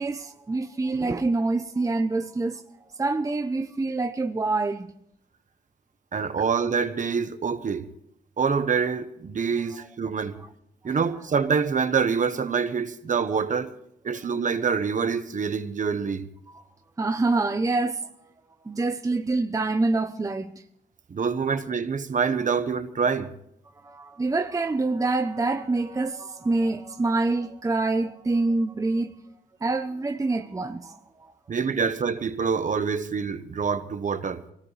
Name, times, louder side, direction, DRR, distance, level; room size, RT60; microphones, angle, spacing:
voice 1, 0.0-2.6 3.0-4.9 16.5-16.6 17.0-18.1 18.6-20.6 23.8-29.1 29.6-31.3, right 3 dB, 20° right, 0.7 m, -26 dB
voice 2, 6.1-7.9 8.4-10.4 10.8-13.7 14.0-16.3 21.1-23.3 31.5-34.4, right 6 dB, 45° right, 1.1 m, -26 dB
24.0 x 18.0 x 3.3 m
cardioid pair, 105°, 18 cm